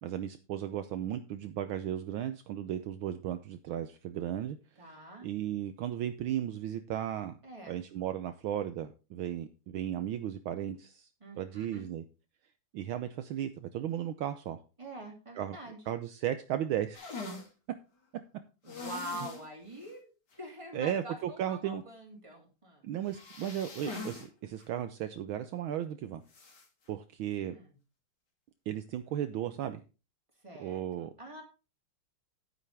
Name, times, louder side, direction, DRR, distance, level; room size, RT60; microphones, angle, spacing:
voice 1, 0.0-4.6 5.2-7.3 7.7-11.1 11.4-12.0 12.7-14.6 15.4-15.6 15.9-17.0 20.7-21.8 22.8-26.2 26.9-27.5 28.7-29.8 30.6-31.1, right 11 dB, 75° right, 9 dB, 1.5 m, -35 dB
voice 2, 4.8-5.3 7.4-7.8 11.2-11.9 14.8-15.8 18.6-20.1 20.4-22.8 27.4-27.7 30.4-31.4, right 1 dB, 15° right, 1 dB, 3.0 m, -45 dB
sound 1, 16.9-17.5 18.7-19.4 19.8-19.9 20.3-20.4 23.1-24.3 24.6-24.7 26.3-26.7, left 4 dB, 50° left, 3.2 m, -42 dB
11.0 x 9.3 x 3.4 m, 0.31 s
omnidirectional pair, 2.4 m